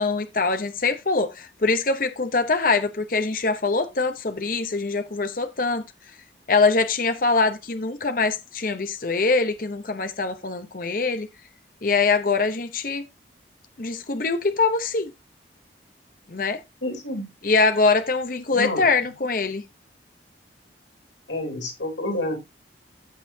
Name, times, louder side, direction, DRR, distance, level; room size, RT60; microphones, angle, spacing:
voice 1, 0.0-5.8 6.5-11.3 11.8-13.0 13.8-15.1 16.3-16.6 17.4-19.6, left 4 dB, 50° left, 0.8 m, -23 dB
voice 2, 16.8-17.2 18.5-18.8 21.3-22.4, left 1 dB, 90° left, 3.4 m, -28 dB
14.0 x 5.5 x 2.7 m
head